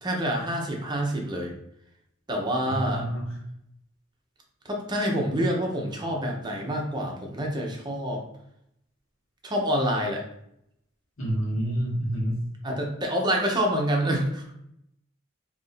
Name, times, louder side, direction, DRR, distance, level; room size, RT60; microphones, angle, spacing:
voice 1, 0.0-1.5 2.3-3.1 4.6-8.3 9.4-10.2 11.5-11.6 12.6-14.6, equal, 20° right, 0 dB, 0.7 m, -27 dB
voice 2, 2.7-3.3 11.2-12.4, right 1 dB, 80° left, -4 dB, 1.3 m, -28 dB
2.8 x 2.6 x 4.1 m, 0.74 s
head